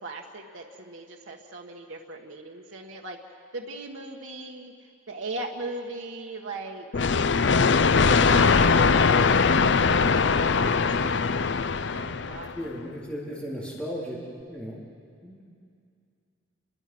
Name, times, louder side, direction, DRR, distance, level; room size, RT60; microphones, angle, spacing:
voice 1, 0.0-3.2 3.5-4.7 5.1-6.9 8.0-9.2 9.6-11.2 11.9-12.5, right 2 dB, 85° right, 0 dB, 1.6 m, -38 dB
sound 1, 6.9-12.6, left 5 dB, 65° left, 0.6 m, -21 dB
voice 2, 12.5-14.2 14.5-14.8 15.2-15.5, equal, 5° left, -6 dB, 3.8 m, -35 dB
29.5 x 22.5 x 6.2 m, 2.3 s
head